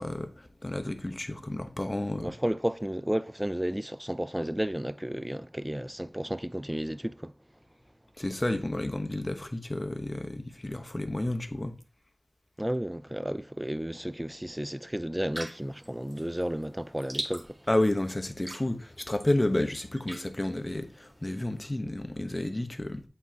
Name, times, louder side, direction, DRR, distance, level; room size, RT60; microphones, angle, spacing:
voice 1, 0.0-2.3 8.2-11.7 17.7-23.0, left 1 dB, 30° left, 0.9 m, -31 dB
voice 2, 2.2-7.3 12.6-17.6, equal, 10° right, 0.3 m, -32 dB
sound 1, 15.3-21.6, right 1 dB, 30° right, 1.7 m, -44 dB
8.2 x 4.5 x 2.8 m
wide cardioid pair, 45°, 0 cm